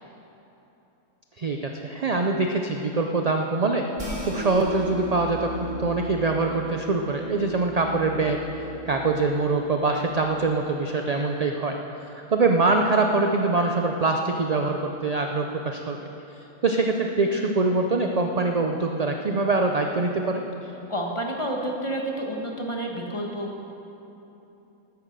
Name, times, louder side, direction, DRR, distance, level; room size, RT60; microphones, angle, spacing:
voice 1, 1.4-3.9 4.2-11.8 12.1-16.0 16.6-20.4, right 3 dB, 50° right, 3 dB, 0.4 m, -24 dB
sound 1, 4.0-10.4, right 2 dB, 20° right, 2.3 m, -37 dB
voice 2, 20.9-23.7, right 1 dB, 20° left, 0 dB, 1.4 m, -30 dB
12.5 x 9.9 x 6.7 m, 3.0 s
omnidirectional pair, 1.5 m